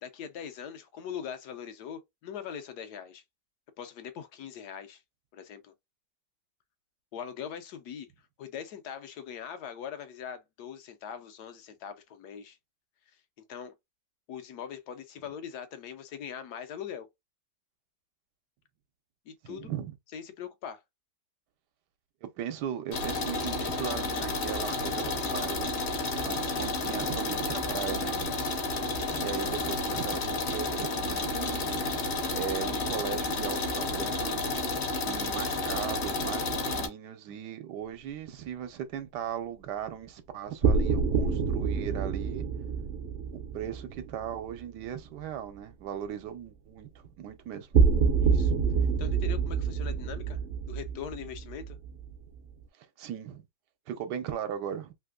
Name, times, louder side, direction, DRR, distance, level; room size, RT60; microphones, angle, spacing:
voice 1, 0.0-3.2 3.8-5.0 5.3-5.7 7.1-8.1 8.4-12.6 13.5-13.7 14.3-17.1 19.3-19.7 20.1-20.8 48.2-48.5 49.0-50.4 50.7-51.8, left 8 dB, 75° left, 1.2 m, -41 dB
voice 2, 19.4-20.0 22.2-25.8 26.2-28.3 29.1-31.9 32.3-34.5 35.0-42.5 43.3-47.7 52.8-53.4 53.9-54.9, right 9 dB, 80° right, 1.3 m, -38 dB
sound 1, 22.9-36.9, left 2 dB, 50° left, 0.9 m, -31 dB
sound 2, 40.6-44.9 47.7-52.4, right 5 dB, 55° right, 0.6 m, -27 dB
3.3 x 2.9 x 2.3 m
omnidirectional pair, 1.8 m